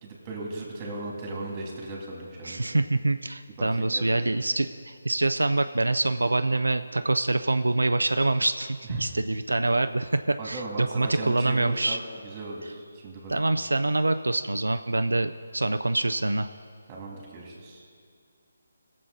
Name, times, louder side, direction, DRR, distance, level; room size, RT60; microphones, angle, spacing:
voice 1, 0.0-2.7 3.6-4.4 8.9-9.0 10.4-12.0 12.2-13.3 16.9-17.8, right 2 dB, 25° right, -2 dB, 2.7 m, -37 dB
voice 2, 2.4-12.0 13.3-16.5, right 2 dB, 85° right, 9 dB, 0.4 m, -25 dB
19.5 x 7.5 x 4.0 m, 2.2 s
figure-of-eight pair, 155°, 0 cm